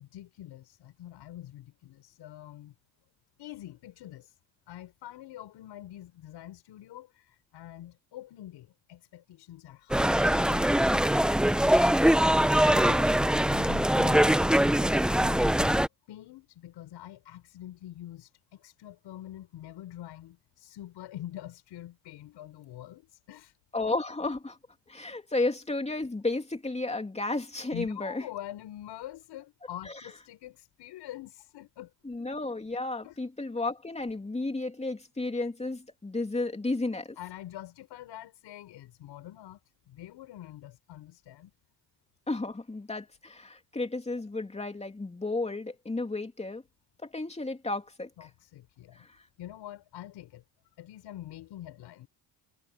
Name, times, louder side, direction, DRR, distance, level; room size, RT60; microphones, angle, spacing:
voice 1, 0.0-2.7 3.4-4.4 4.7-11.3 13.5-14.4 14.7-15.8 16.1-23.5 27.7-31.9 33.0-33.2 37.2-39.6 39.9-41.5 48.2-49.1 49.4-50.4 50.8-52.1, left 13 dB, 85° left, 6.4 m, -45 dB
sound 1, 9.9-15.9, right 1 dB, ahead, 0.7 m, -23 dB
voice 2, 12.6-13.2 23.7-24.6 24.9-28.2 29.9-30.0 32.0-37.2 42.3-46.6 47.0-48.1 49.0-49.1, left 2 dB, 15° left, 2.9 m, -33 dB
cardioid pair, 105°, 41 cm